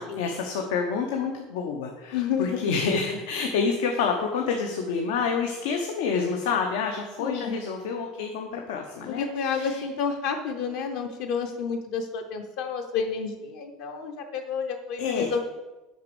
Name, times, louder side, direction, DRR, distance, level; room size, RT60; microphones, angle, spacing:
voice 1, 0.0-9.7 15.0-15.3, left 5 dB, 85° left, 2 dB, 0.9 m, -28 dB
voice 2, 2.1-2.7 7.2-7.6 9.1-15.4, left 6 dB, 55° left, 5 dB, 0.8 m, -30 dB
6.6 x 5.1 x 6.9 m, 1.1 s
cardioid pair, 175°, 0 cm